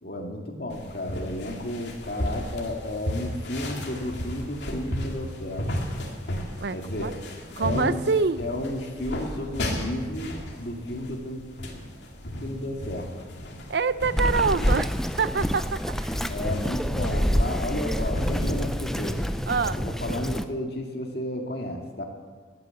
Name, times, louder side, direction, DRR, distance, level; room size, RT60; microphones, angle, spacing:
voice 1, 0.0-5.7 6.7-7.1 7.6-8.0 8.4-11.4 12.3-13.1 16.3-19.3 19.8-22.0, left 1 dB, 55° left, 1 dB, 2.0 m, -32 dB
sound 1, 0.7-19.5, equal, 75° left, 2.4 m, -35 dB
voice 2, 7.6-8.5 13.7-16.3 19.5-19.8, right 4 dB, 65° right, 15 dB, 0.5 m, -26 dB
Bird vocalization bird call bird song, 14.2-20.4, equal, ahead, 0.4 m, -27 dB
17.5 x 9.4 x 7.7 m, 1.5 s
head